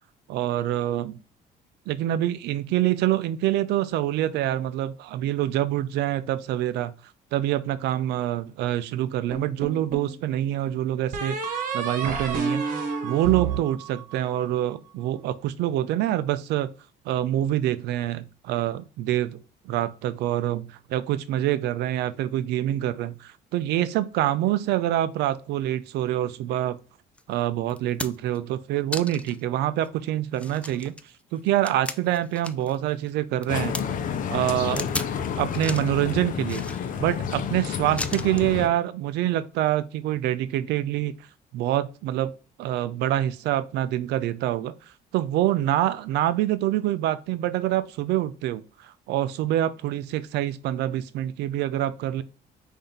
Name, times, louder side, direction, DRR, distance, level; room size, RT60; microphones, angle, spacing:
voice 1, 0.3-1.2 1.9-6.9 7.3-12.6 13.0-16.7 17.1-26.8 27.3-30.9 31.3-33.8 34.3-34.9 35.4-41.1 41.5-42.3 42.6-44.7 45.1-52.2, right 13 dB, 80° right, 0.5 m, -26 dB
sound 1, 9.3-10.2 11.1-14.5, right 5 dB, 50° right, 1.3 m, -30 dB
sound 2, 27.2-27.3 27.7-28.4 28.9-29.4 29.8-29.9 30.3-32.8 33.1-33.8 34.8-35.2 35.5-35.9 36.4-37.1 38.0-38.5 39.6-39.7, left 2 dB, 5° left, 0.4 m, -35 dB
sound 3, 33.5-38.7, left 7 dB, 50° left, 0.6 m, -30 dB
5.5 x 2.7 x 3.3 m
cardioid pair, 110°, 17 cm